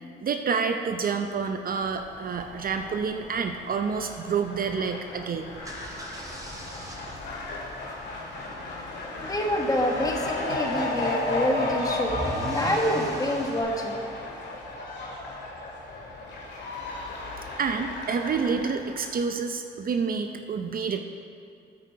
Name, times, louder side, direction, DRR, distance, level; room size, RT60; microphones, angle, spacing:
voice 1, 0.2-5.5 17.6-21.0, right 5 dB, 45° right, 6 dB, 0.6 m, -28 dB
Fowl, 1.9-19.2, left 2 dB, 65° left, 2.3 m, -34 dB
sound 1, 5.5-13.6, right 1 dB, 15° right, 1.7 m, -40 dB
voice 2, 9.2-12.2 12.5-14.0, equal, 20° left, 1 dB, 1.4 m, -27 dB
9.1 x 8.8 x 4.7 m, 2.4 s
cardioid pair, 90°, 20 cm